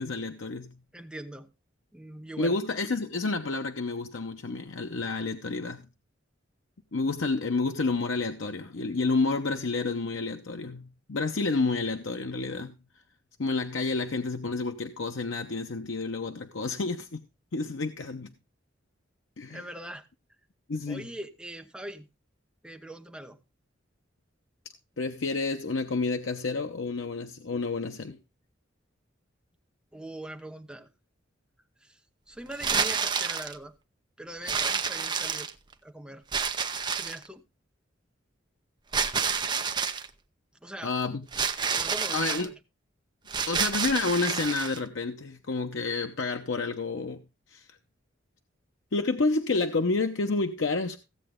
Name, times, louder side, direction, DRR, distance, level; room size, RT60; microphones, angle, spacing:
voice 1, 0.0-0.8 2.4-5.9 6.9-12.7 13.4-17.2 17.5-18.3 19.4-19.6 20.7-21.1 25.0-28.2 40.8-41.2 42.1-42.5 43.5-47.2 47.5-47.8 48.9-51.0, left 3 dB, 80° left, 0.8 m, -29 dB
voice 2, 0.9-1.5 1.9-2.6 19.5-20.1 20.9-22.1 22.6-23.4 29.9-30.9 31.8-32.0 32.3-33.7 34.2-35.5 35.8-36.2 36.9-37.4 40.6-40.9 41.8-42.5, right 1 dB, 5° right, 1.0 m, -41 dB
sound 1, 32.5-33.6 34.5-35.7 36.3-37.3 38.9-40.1 41.3-42.5 43.3-44.8, right 6 dB, 25° right, 0.7 m, -29 dB
15.5 x 7.8 x 3.6 m
head